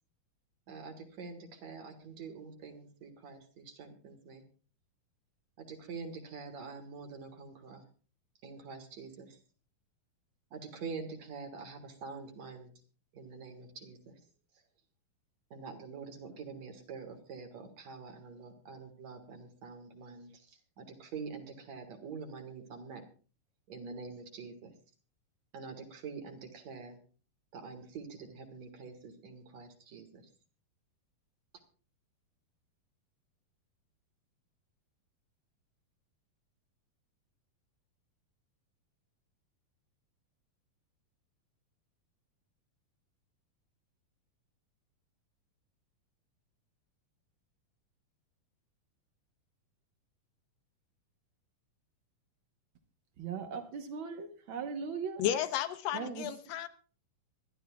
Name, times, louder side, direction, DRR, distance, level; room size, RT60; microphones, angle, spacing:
voice 1, 0.7-4.4 5.6-7.9 8.4-9.4 10.5-12.7 13.1-14.2 15.5-23.1 23.7-24.8 25.5-27.0 27.5-30.3, right 5 dB, 55° right, 4 dB, 2.7 m, -46 dB
voice 2, 53.2-55.2 55.9-56.3, right 6 dB, 90° right, 6 dB, 1.0 m, -39 dB
voice 3, 55.2-56.7, left 11 dB, 80° left, 9 dB, 2.5 m, -33 dB
25.0 x 12.0 x 2.3 m, 0.38 s
omnidirectional pair, 4.0 m